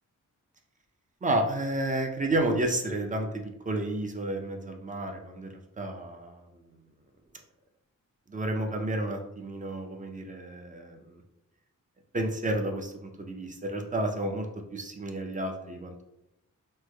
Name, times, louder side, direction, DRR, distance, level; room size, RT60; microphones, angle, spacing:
voice 1, 1.2-6.5 8.3-11.2 12.1-16.0, right 1 dB, 25° right, 3 dB, 0.4 m, -31 dB
3.2 x 2.0 x 3.2 m, 0.89 s
wide cardioid pair, 140°, 32 cm